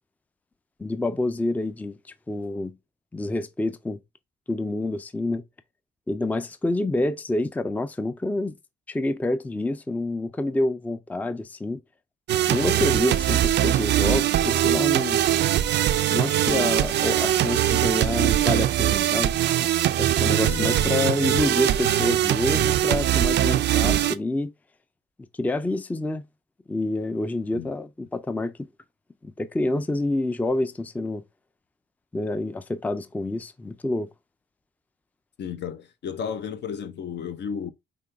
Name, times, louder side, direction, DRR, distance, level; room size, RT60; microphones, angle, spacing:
voice 1, 0.8-2.0 2.3-2.7 3.1-4.0 4.5-5.4 6.1-8.5 8.9-11.8 12.5-15.3 16.1-19.3 20.0-24.5 25.4-26.3 26.7-28.5 29.2-31.2 32.1-34.1, left 2 dB, 10° left, 0.4 m, -27 dB
sound 1, 12.3-24.1, right 12 dB, 60° right, 0.4 m, -22 dB
voice 2, 35.4-37.7, left 7 dB, 60° left, 0.7 m, -33 dB
5.3 x 2.2 x 3.3 m
cardioid pair, 90°, 20 cm